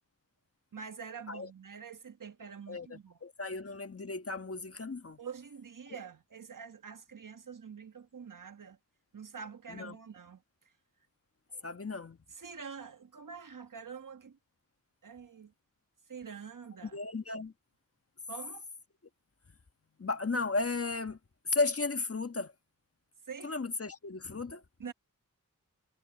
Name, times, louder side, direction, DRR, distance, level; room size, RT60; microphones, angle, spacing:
voice 1, 0.7-3.2 5.2-8.8 9.1-10.4 11.5-11.7 12.3-14.4 15.0-15.5 16.1-17.0 18.3-18.6 23.3-23.6 24.8-24.9, right 6 dB, 65° right, 1.5 m, -46 dB
voice 2, 2.7-5.2 9.7-10.0 11.6-12.2 16.9-17.5 20.0-21.2 21.4-22.5 23.4-24.6, left 3 dB, 40° left, 1.5 m, -34 dB
wide cardioid pair, 75°, 34 cm